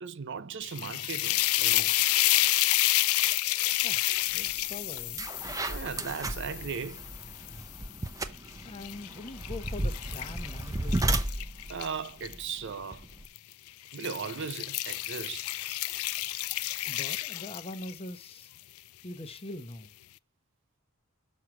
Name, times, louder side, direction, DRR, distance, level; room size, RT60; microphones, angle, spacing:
voice 1, 0.0-1.9 5.7-7.1 11.7-13.1 13.9-15.5, right 6 dB, 60° right, 0.6 m, -37 dB
sound 1, 0.6-7.8 8.4-12.3 13.2-13.5 13.9-18.1, left 17 dB, 85° left, 0.4 m, -30 dB
voice 2, 3.8-5.3 8.6-11.2 16.9-18.5 19.0-19.9, left 2 dB, 30° left, 0.9 m, -43 dB
sound 2, 4.4-4.6 5.0-13.2, right 1 dB, 15° right, 0.6 m, -34 dB
6.5 x 6.0 x 5.8 m
head